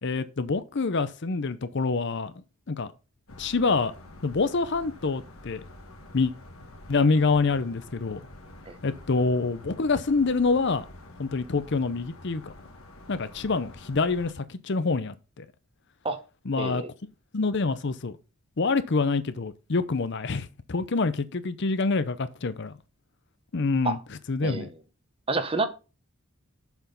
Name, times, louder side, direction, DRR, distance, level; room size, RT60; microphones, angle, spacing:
voice 1, 0.0-2.3 2.7-2.9 3.4-3.9 4.2-5.6 6.1-6.3 6.9-8.2 8.8-10.9 11.2-12.5 13.1-15.5 16.5-16.8 17.3-18.2 18.6-22.7 23.5-24.0 24.3-24.7, left 4 dB, 55° left, 0.6 m, -26 dB
sound 1, 3.3-14.3, left 1 dB, 75° left, 1.7 m, -48 dB
voice 2, 16.6-16.9 23.8-24.0 24.4-24.7 25.3-25.7, right 3 dB, 25° right, 1.0 m, -28 dB
7.1 x 6.1 x 5.4 m
head